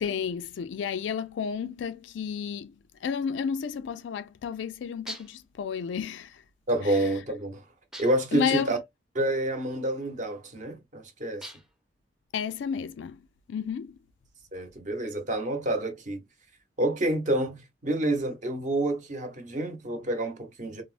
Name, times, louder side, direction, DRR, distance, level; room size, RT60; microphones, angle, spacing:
voice 1, 0.0-6.4 6.8-7.1 8.3-8.8 12.3-14.0, left 7 dB, 85° left, 0.3 m, -32 dB
sound 1, 5.1-5.5 7.9-8.4 11.4-11.9, equal, 5° right, 0.5 m, -42 dB
voice 2, 6.7-7.6 8.0-8.8 9.1-11.4 14.5-16.2 16.8-20.8, right 1 dB, 45° right, 0.8 m, -28 dB
3.4 x 2.0 x 2.4 m
head